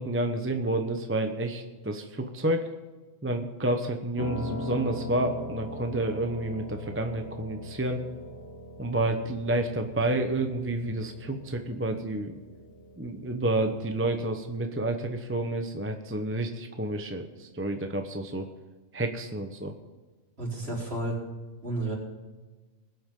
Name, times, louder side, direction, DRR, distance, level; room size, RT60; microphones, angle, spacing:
voice 1, 0.0-2.7 3.2-8.0 8.8-12.3 13.0-18.5 18.9-19.7, right 1 dB, 10° right, 5 dB, 0.9 m, -29 dB
Piano, 4.2-14.3, left 1 dB, 50° left, 2.1 m, -41 dB
voice 2, 20.4-21.2 21.6-22.0, right 2 dB, 55° right, -5 dB, 4.7 m, -31 dB
21.0 x 8.6 x 3.8 m, 1.3 s
omnidirectional pair, 1.3 m